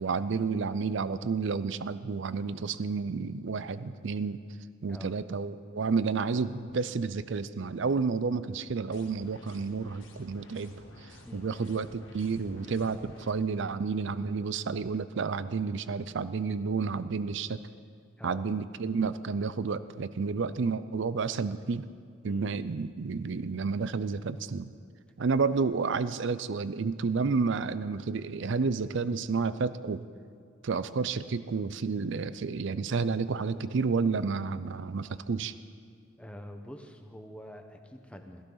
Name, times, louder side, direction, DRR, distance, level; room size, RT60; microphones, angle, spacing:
voice 1, 0.0-4.4 4.8-17.6 18.2-21.9 22.2-24.7 25.2-30.1 30.6-35.5, right 4 dB, 60° right, 14 dB, 0.5 m, -30 dB
sound 1, 8.9-13.3, left 1 dB, 65° left, 1.8 m, -52 dB
voice 2, 18.2-18.5 22.3-22.6 36.2-38.4, equal, 5° left, 4 dB, 0.9 m, -45 dB
17.0 x 14.5 x 4.0 m, 2.2 s
head